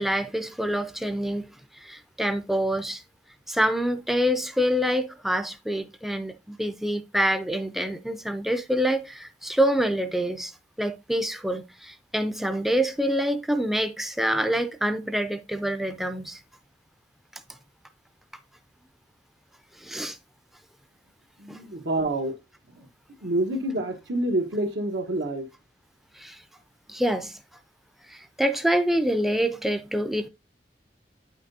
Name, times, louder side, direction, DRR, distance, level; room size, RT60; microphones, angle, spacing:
voice 1, 0.0-1.5 1.7-3.0 3.5-10.5 10.8-16.4 19.8-20.2 21.5-21.6 26.2-26.4 26.9-27.4 28.1-30.3, equal, ahead, 0.4 m, -26 dB
voice 2, 21.4-22.4 22.7-22.9 23.2-25.5, right 1 dB, 85° right, 1.2 m, -27 dB
8.9 x 5.9 x 2.7 m
head